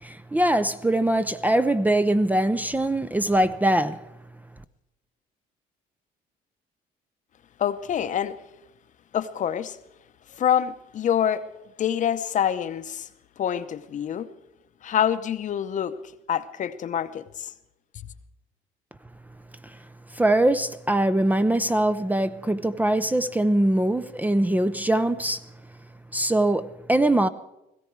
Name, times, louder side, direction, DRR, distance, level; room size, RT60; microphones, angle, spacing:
voice 1, 0.0-4.0 19.6-19.7 20.1-25.4 26.1-27.3, right 1 dB, 10° right, 0.5 m, -22 dB
voice 2, 7.6-8.4 9.1-9.8 10.3-11.4 11.8-13.1 13.4-14.3 14.8-15.9 16.3-17.5, left 9 dB, 50° left, 0.8 m, -26 dB
17.5 x 15.5 x 4.6 m
cardioid pair, 110°, 17 cm